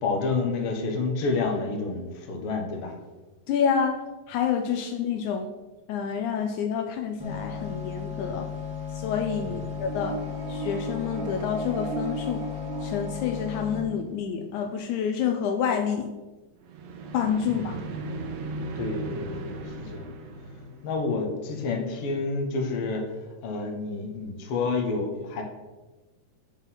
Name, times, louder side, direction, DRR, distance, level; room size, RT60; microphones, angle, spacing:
voice 1, 0.0-3.0 9.7-9.8 17.5-17.8 18.8-20.0 20.8-23.1 23.4-25.4, left 3 dB, 60° left, 3 dB, 1.8 m, -29 dB
voice 2, 3.5-4.0 4.3-5.5 5.9-8.5 8.9-10.2 10.5-12.5 12.8-16.1 17.1-17.8, left 7 dB, 80° left, 6 dB, 1.9 m, -28 dB
sound 1, 7.2-13.8, left 7 dB, 5° right, 1.4 m, -35 dB
sound 2, 9.7-14.0 16.6-21.6, right 3 dB, 70° right, 2.0 m, -37 dB
9.8 x 4.0 x 5.7 m, 1.2 s
omnidirectional pair, 3.6 m